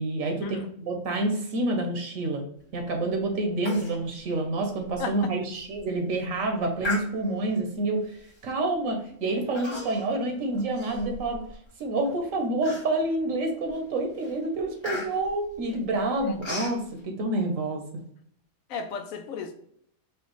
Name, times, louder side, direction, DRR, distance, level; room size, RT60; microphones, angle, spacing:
voice 1, 0.0-2.4 2.7-8.1 8.4-11.4 11.8-17.8, right 2 dB, 75° right, 1.2 m, -28 dB
Human voice, 3.7-4.0 4.3-4.4 4.9-5.0 5.6-5.8 6.8-7.5 8.3-8.5 9.5-10.2 10.5-11.6 12.0-12.1 12.6-13.2 13.7-13.9 14.2-16.8, left 2 dB, 25° left, 1.0 m, -36 dB
voice 2, 18.7-19.5, left 5 dB, 90° left, 1.0 m, -34 dB
4.5 x 2.4 x 3.0 m
omnidirectional pair, 1.4 m